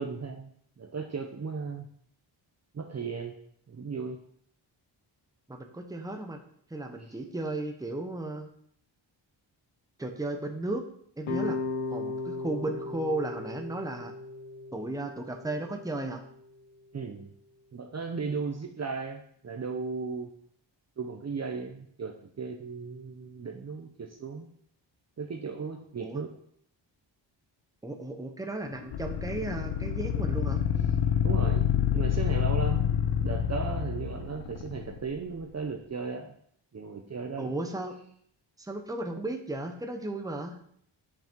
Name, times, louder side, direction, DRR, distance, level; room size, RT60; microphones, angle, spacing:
voice 1, 0.0-1.9 2.7-3.3 3.7-4.2 7.0-7.1 16.9-17.3 17.7-20.3 21.0-24.5 25.2-26.3 31.2-36.4 36.7-37.6, right 5 dB, 35° right, 3 dB, 0.7 m, -36 dB
voice 2, 5.5-6.4 6.7-8.5 10.0-10.8 11.2-11.6 11.9-14.1 14.7-16.2 26.0-26.2 27.8-30.6 37.4-38.0 38.6-40.6, right 2 dB, 10° right, 4 dB, 0.9 m, -35 dB
sound 1, 11.2-16.4, left 3 dB, 90° left, 1.3 m, -36 dB
sound 2, 28.9-35.1, left 9 dB, 60° left, 0.8 m, -27 dB
10.0 x 5.9 x 4.5 m, 0.66 s
wide cardioid pair, 145°, 46 cm